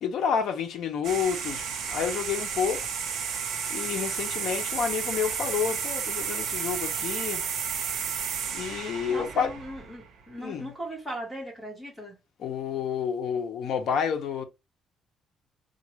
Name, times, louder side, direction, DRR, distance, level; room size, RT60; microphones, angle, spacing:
voice 1, 0.0-2.9 3.7-7.4 8.5-9.5 10.4-10.7 12.4-14.4, left 7 dB, 65° left, 0.7 m, -29 dB
sound 1, 1.0-10.2, right 7 dB, 75° right, 0.8 m, -32 dB
voice 2, 9.1-12.2, right 1 dB, ahead, 1.3 m, -38 dB
3.7 x 2.3 x 3.1 m
cardioid pair, 165°, 0 cm